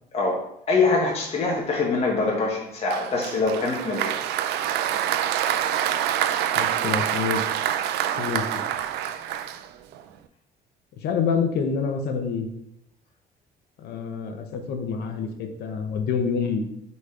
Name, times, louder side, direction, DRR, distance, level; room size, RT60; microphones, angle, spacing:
voice 1, 0.7-4.1, left 3 dB, 35° left, -2 dB, 1.3 m, -24 dB
Applause, 2.9-10.0, right 10 dB, 80° right, 0.4 m, -26 dB
voice 2, 6.6-7.4 8.2-8.6 11.0-12.5 13.8-16.6, left 6 dB, 75° left, 5 dB, 0.9 m, -27 dB
5.0 x 4.1 x 4.9 m, 0.78 s
cardioid pair, 110°, 17 cm